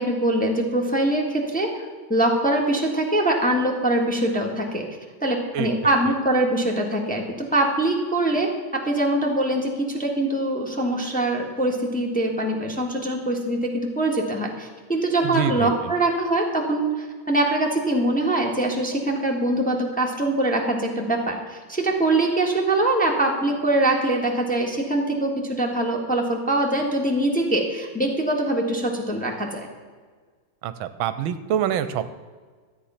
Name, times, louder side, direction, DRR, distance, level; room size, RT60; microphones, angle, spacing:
voice 1, 0.0-1.8 2.1-4.8 5.2-29.7, right 1 dB, 5° left, 0 dB, 1.3 m, -23 dB
voice 2, 15.2-15.7 30.6-32.0, right 9 dB, 80° right, 12 dB, 1.4 m, -25 dB
13.0 x 8.6 x 5.7 m, 1.5 s
omnidirectional pair, 2.2 m